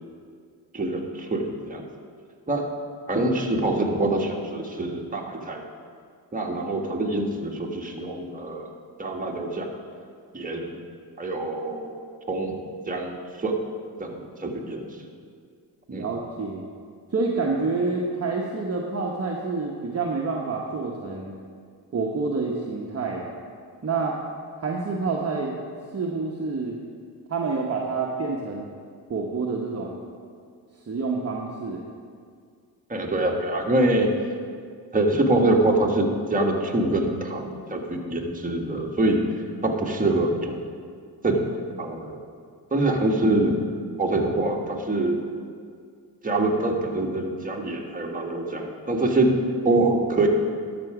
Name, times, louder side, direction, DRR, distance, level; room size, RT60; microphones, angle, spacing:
voice 1, 0.7-1.8 2.5-2.7 3.1-5.6 6.3-8.7 9.0-9.7 10.3-10.7 11.2-11.9 12.3-12.6 12.9-13.1 13.4-13.6 14.0-15.0 15.9-16.0 32.9-34.1 34.9-39.3 39.6-40.5 41.2-41.5 41.8-42.2 42.7-43.6 44.0-45.2 46.2-49.3 49.6-50.3, right 2 dB, 20° right, 0 dB, 1.6 m, -24 dB
voice 2, 15.9-16.7 17.1-21.3 21.9-23.3 23.8-24.2 24.6-25.6 25.9-26.8 27.3-28.7 29.1-30.0 30.7-31.8, right 4 dB, 35° right, -1 dB, 1.1 m, -28 dB
12.5 x 6.2 x 4.9 m, 2.1 s
supercardioid pair, 60°, 43 cm